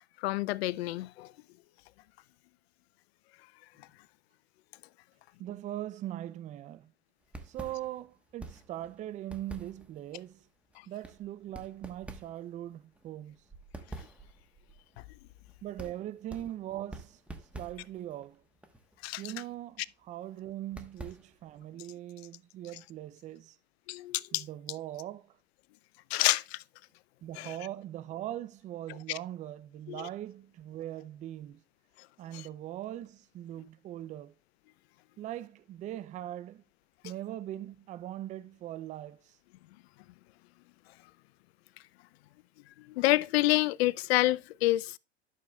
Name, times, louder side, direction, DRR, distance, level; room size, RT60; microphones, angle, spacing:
voice 1, 0.2-1.3 19.0-19.2 23.9-24.4 26.1-26.6 27.4-27.5 29.1-29.2 29.9-30.1 32.3-32.4 42.9-45.0, left 18 dB, 70° left, 0.5 m, -28 dB
voice 2, 5.4-6.9 7.5-10.4 10.9-13.4 15.6-17.2 17.5-18.4 19.2-23.6 24.3-25.4 27.2-31.6 32.2-34.3 35.2-36.6 37.0-39.4, right 13 dB, 25° right, 0.4 m, -41 dB
sound 1, 7.2-21.6, right 2 dB, 5° right, 1.1 m, -49 dB
12.0 x 6.6 x 2.3 m
hypercardioid pair, 105°, 33 cm